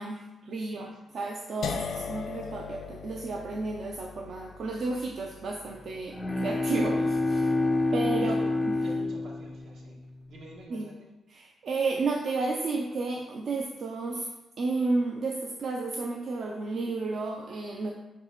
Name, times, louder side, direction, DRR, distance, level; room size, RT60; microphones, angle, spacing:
voice 1, 0.0-7.5 7.9-8.4 8.7-8.8 10.7-10.9 11.3-14.3 14.6-17.9, right 3 dB, 50° right, 1 dB, 0.5 m, -32 dB
voice 2, 0.5-1.0 8.2-8.5 8.8-11.1, right 1 dB, 75° right, -1 dB, 1.4 m, -49 dB
sound 1, 1.6-7.6, left 6 dB, 70° left, 0.4 m, -40 dB
sound 2, 6.0-10.1, left 2 dB, 10° left, 0.4 m, -27 dB
5.7 x 4.4 x 4.1 m, 1.0 s
wide cardioid pair, 170°, 0 cm